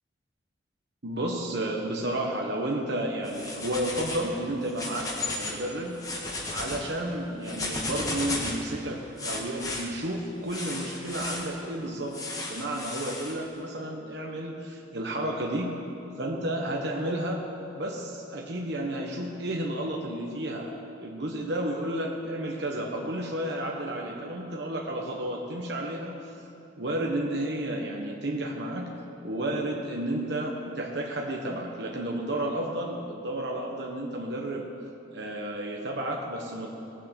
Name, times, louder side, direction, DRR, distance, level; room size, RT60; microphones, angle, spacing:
voice 1, 1.0-6.0 6.5-15.7 16.2-17.4 17.7-26.2 26.8-28.9 29.2-34.7 35.1-36.7, right 1 dB, 60° right, 0 dB, 1.1 m, -32 dB
sound 1, 3.2-4.3 4.6-5.6 5.9-6.8 7.4-8.6 9.2-9.8 10.5-11.5 12.1-13.3, left 2 dB, 20° left, 1.4 m, -34 dB
17.0 x 7.5 x 7.4 m, 2.8 s
head